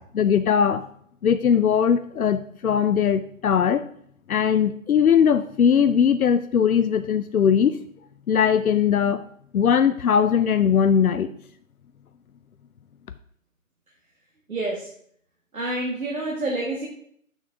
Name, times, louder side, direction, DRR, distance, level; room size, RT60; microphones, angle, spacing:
voice 1, 0.1-0.9 1.2-3.8 4.3-7.8 8.3-9.2 9.5-11.3, left 7 dB, 85° left, 10 dB, 0.6 m, -20 dB
voice 2, 14.5-14.9 15.5-16.9, right 2 dB, 85° right, -2 dB, 1.8 m, -28 dB
7.0 x 6.2 x 3.5 m, 0.65 s
figure-of-eight pair, 165°, 42 cm